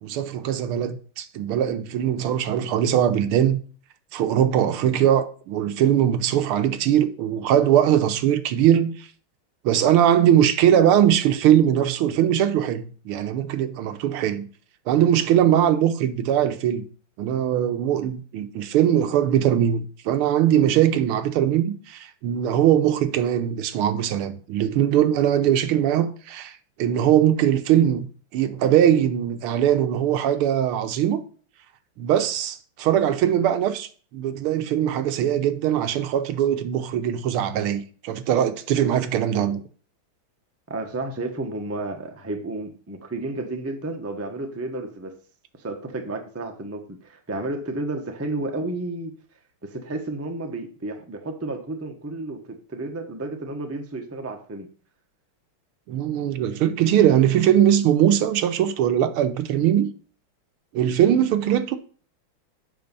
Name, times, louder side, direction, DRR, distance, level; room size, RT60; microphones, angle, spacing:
voice 1, 0.0-3.6 4.1-9.1 9.6-14.5 14.9-16.9 17.2-28.1 28.3-31.2 32.0-39.6 55.9-59.9 60.7-61.8, right 10 dB, 90° right, 1.7 m, -21 dB
voice 2, 40.7-45.1 45.6-49.1 49.6-54.7, right 2 dB, 15° right, 0.5 m, -32 dB
7.9 x 6.1 x 5.4 m
omnidirectional pair, 2.3 m